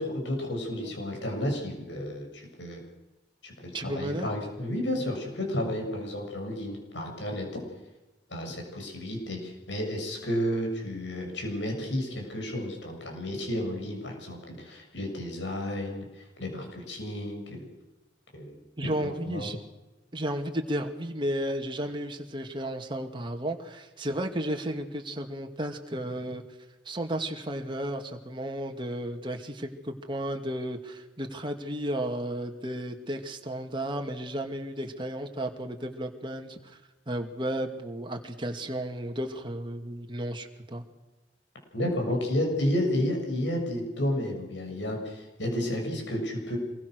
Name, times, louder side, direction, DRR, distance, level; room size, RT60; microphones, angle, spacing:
voice 1, 0.0-2.8 3.4-7.6 8.3-17.7 18.3-18.6 19.0-19.5 41.7-46.6, left 1 dB, 85° left, 2 dB, 7.1 m, -32 dB
voice 2, 3.7-4.3 18.8-19.6 20.1-26.4 26.9-36.8 37.1-40.8, right 1 dB, 30° right, 3 dB, 2.4 m, -33 dB
26.0 x 22.0 x 6.6 m, 1.1 s
head